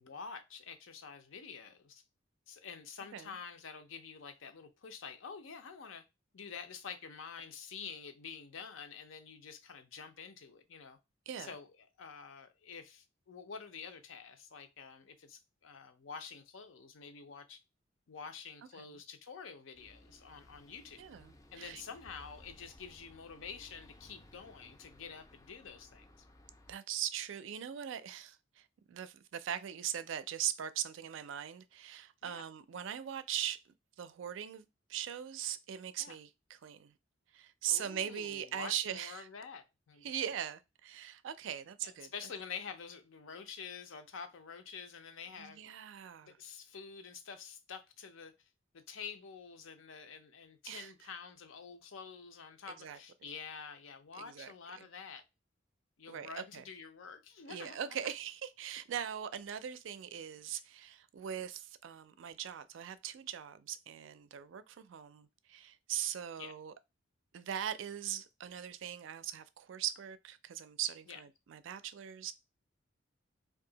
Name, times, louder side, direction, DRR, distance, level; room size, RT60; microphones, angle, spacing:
voice 1, 0.0-2.0 2.5-6.0 6.3-11.0 11.4-11.7 12.0-17.6 18.1-21.1 21.5-26.1 32.2-32.5 36.0-36.2 37.7-40.2 41.8-45.6 46.2-48.3 48.7-55.2 56.0-58.0 66.4-66.5 71.1-71.2, left 6 dB, 85° left, 0.6 m, -48 dB
sound 1, 19.7-26.8, left 1 dB, 15° left, 0.4 m, -59 dB
voice 2, 21.0-21.8 26.7-33.6 34.0-36.9 37.3-39.3 40.0-42.1 45.4-46.4 50.7-50.9 52.8-53.0 54.1-54.9 56.1-56.6 57.5-66.7 67.3-72.3, right 10 dB, 70° right, 0.4 m, -40 dB
2.7 x 2.4 x 3.8 m
head